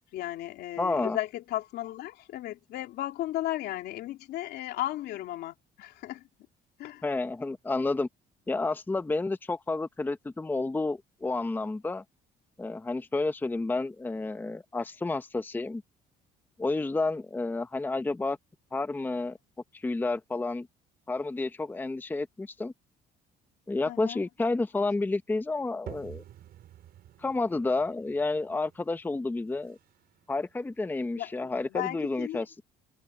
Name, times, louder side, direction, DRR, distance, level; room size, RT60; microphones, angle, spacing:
voice 1, 0.1-6.2 6.8-7.0 23.9-24.2 31.2-32.4, left 14 dB, 80° left, 3.1 m, -35 dB
voice 2, 0.8-1.2 7.0-8.1 8.5-12.0 12.6-15.8 16.6-18.4 18.7-19.4 19.7-20.7 21.1-22.7 23.7-26.2 27.2-29.8 30.3-32.6, left 3 dB, 10° left, 0.7 m, -30 dB
sound 1, 25.9-31.3, right 12 dB, 70° right, 5.6 m, -50 dB
cardioid pair, 110°, 17 cm